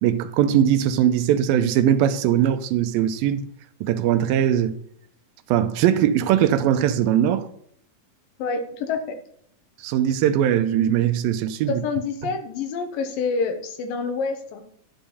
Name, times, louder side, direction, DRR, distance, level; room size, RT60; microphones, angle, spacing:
voice 1, 0.0-3.5 3.8-4.8 5.5-7.5 9.8-11.8, right 10 dB, 85° right, 2.4 m, -20 dB
voice 2, 8.4-9.2 11.7-14.6, left 4 dB, 75° left, 2.7 m, -27 dB
11.0 x 5.6 x 6.8 m
omnidirectional pair, 4.2 m